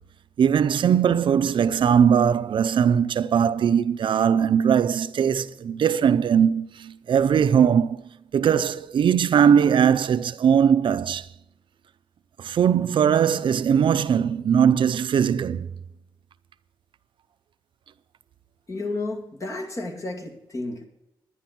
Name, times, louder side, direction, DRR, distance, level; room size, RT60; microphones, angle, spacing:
voice 1, 0.4-8.0 8.3-11.2 12.4-15.7, right 8 dB, 80° right, 0.6 m, -20 dB
voice 2, 18.7-20.9, left 2 dB, 40° left, 2.2 m, -32 dB
11.0 x 10.5 x 5.8 m
wide cardioid pair, 105°, 8 cm